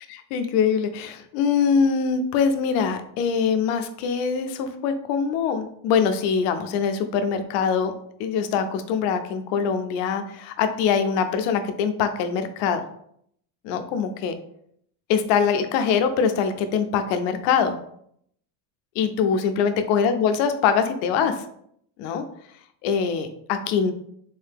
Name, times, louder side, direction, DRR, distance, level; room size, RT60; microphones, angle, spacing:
voice 1, 0.3-7.9 8.2-12.8 13.6-14.3 15.1-17.8 19.0-21.4 22.0-22.2 22.8-23.9, left 6 dB, 85° left, 8 dB, 0.6 m, -23 dB
3.9 x 2.8 x 3.4 m, 0.68 s
cardioid pair, 135°, 49 cm